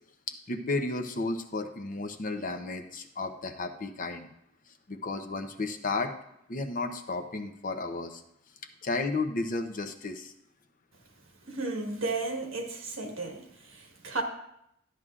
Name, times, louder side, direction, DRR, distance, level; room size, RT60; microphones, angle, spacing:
voice 1, 0.5-4.3 4.9-6.1 6.5-8.2 8.8-10.3, left 3 dB, 40° left, 0.7 m, -33 dB
voice 2, 11.5-14.2, right 3 dB, 70° right, 1.5 m, -34 dB
12.5 x 9.2 x 2.5 m
head